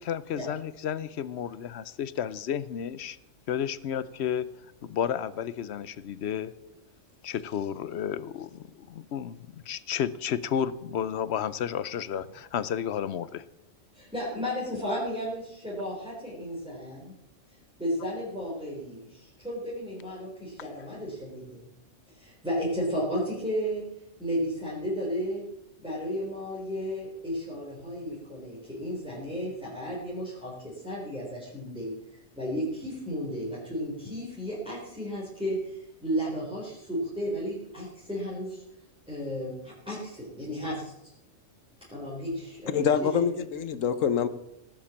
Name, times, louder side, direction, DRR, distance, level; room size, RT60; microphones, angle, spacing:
voice 1, 0.0-3.2 3.5-4.5 4.8-6.5 7.2-13.4, left 9 dB, 65° left, 0.9 m, -32 dB
voice 2, 13.9-17.2 17.8-21.6 22.1-23.8 24.2-25.5 25.8-38.6 39.1-40.9 41.9-43.2, equal, 5° right, 3.9 m, -33 dB
voice 3, 42.7-44.3, left 7 dB, 90° left, 1.3 m, -25 dB
18.0 x 7.3 x 7.3 m
omnidirectional pair, 1.3 m